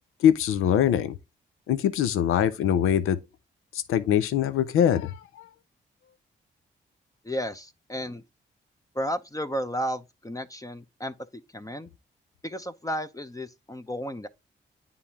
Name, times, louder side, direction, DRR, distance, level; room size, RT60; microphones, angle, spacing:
voice 1, 0.2-1.1 1.7-3.2 3.9-5.5, left 9 dB, 85° left, 0.6 m, -23 dB
voice 2, 7.2-8.2 8.9-11.1 11.5-11.9 12.4-14.3, equal, 15° left, 0.7 m, -33 dB
9.6 x 3.7 x 2.8 m
supercardioid pair, 50°, 21 cm